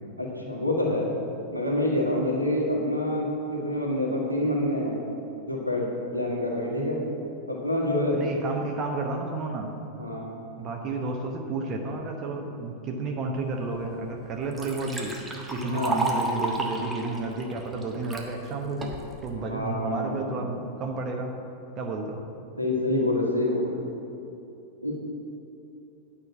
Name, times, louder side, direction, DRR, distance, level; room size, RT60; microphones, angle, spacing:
voice 1, 0.2-1.1 1.5-5.1 5.5-5.9 6.1-7.0 7.5-8.2 10.0-10.3 15.7-16.0 19.5-20.3 22.6-23.8 24.8-24.9, left 1 dB, 90° right, -3 dB, 1.7 m, -27 dB
voice 2, 8.1-9.7 10.6-21.4 21.8-22.2, right 3 dB, 30° right, 2 dB, 1.0 m, -31 dB
Liquid, 13.8-13.9 14.2-18.3 18.8-19.3, right 2 dB, 10° right, 1.3 m, -32 dB
9.4 x 5.7 x 7.1 m, 2.8 s
figure-of-eight pair, 90°, 0 cm